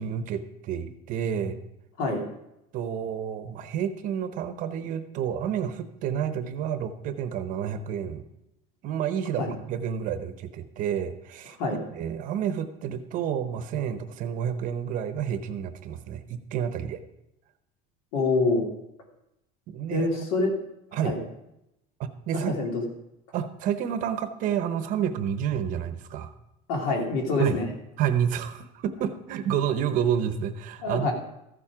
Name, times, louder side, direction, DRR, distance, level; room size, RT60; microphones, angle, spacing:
voice 1, 0.0-1.6 2.7-8.2 8.8-11.6 11.9-17.0 19.7-20.2 20.9-21.2 22.0-22.5 23.3-26.3 27.4-27.6 28.0-31.1, right 8 dB, 45° right, 10 dB, 0.8 m, -29 dB
voice 2, 18.1-18.6 19.9-20.5 21.0-21.2 22.5-22.8 26.7-27.7 30.8-31.1, left 2 dB, 75° left, 1 dB, 2.8 m, -25 dB
14.0 x 7.3 x 5.0 m, 0.85 s
cardioid pair, 165°, 20 cm